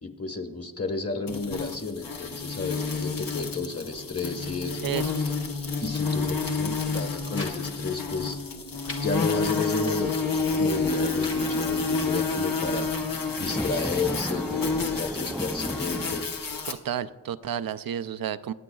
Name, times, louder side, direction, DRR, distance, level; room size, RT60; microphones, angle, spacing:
voice 1, 0.0-4.9 5.8-8.4 9.0-12.9 13.4-16.3, left 4 dB, 40° left, 4 dB, 1.4 m, -32 dB
sound 1, 1.3-16.7, left 4 dB, 70° left, 1.1 m, -29 dB
voice 2, 4.8-5.1 16.7-18.5, right 9 dB, 70° right, 13 dB, 0.5 m, -31 dB
sound 2, 6.2-6.6 6.9-7.6 7.8-7.9 8.3-9.0 9.6-10.2 10.9-11.5 12.1-12.9, left 2 dB, 85° left, 2.0 m, -43 dB
sound 3, 10.5-16.2, equal, ahead, 0.4 m, -36 dB
23.5 x 9.8 x 2.3 m, 1.4 s
wide cardioid pair, 60°, 35 cm